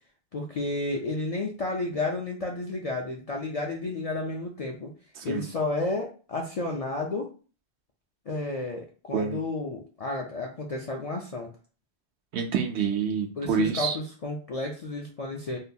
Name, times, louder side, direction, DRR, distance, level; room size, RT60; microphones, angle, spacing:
voice 1, 0.3-4.9 5.2-7.3 8.3-11.5 13.4-15.6, left 2 dB, 55° left, 0 dB, 0.4 m, -31 dB
voice 2, 12.3-14.0, right 7 dB, 85° right, 5 dB, 0.9 m, -27 dB
3.6 x 2.2 x 2.6 m, 0.37 s
omnidirectional pair, 1.1 m